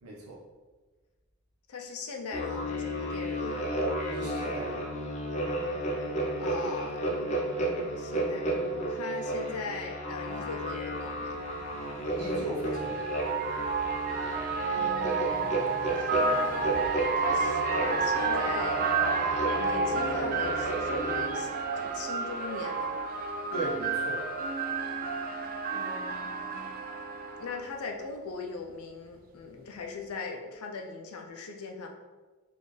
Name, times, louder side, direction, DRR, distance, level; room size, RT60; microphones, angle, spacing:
voice 1, 0.0-0.4 4.0-5.0 12.2-13.2 23.5-24.3, right 2 dB, 90° right, -3 dB, 1.0 m, -37 dB
voice 2, 1.7-3.7 6.4-7.0 7.9-11.4 14.7-15.6 16.0-16.8 17.2-22.9 25.7-26.8 27.4-31.9, left 4 dB, 85° left, 2 dB, 0.5 m, -39 dB
sound 1, 2.3-21.2, right 1 dB, 30° left, 0.6 m, -33 dB
sound 2, 10.5-10.6 12.1-27.7, right 4 dB, 40° right, 0.3 m, -30 dB
3.9 x 2.5 x 3.2 m, 1.3 s
head